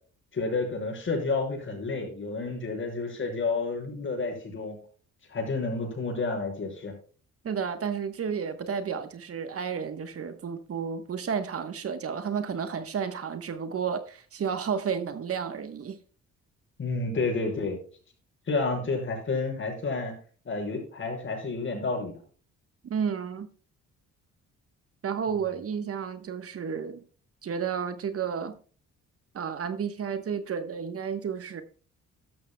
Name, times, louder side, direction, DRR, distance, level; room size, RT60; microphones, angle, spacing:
voice 1, 0.3-4.8 5.3-6.9 16.8-17.8 18.5-20.1 20.4-22.1, left 3 dB, 40° left, 6.0 m, -30 dB
voice 2, 7.4-16.0 22.8-23.5 25.0-27.0 27.4-28.5 29.3-31.6, right 7 dB, 50° right, 1.2 m, -32 dB
13.0 x 12.5 x 2.3 m
cardioid pair, 90°, 30 cm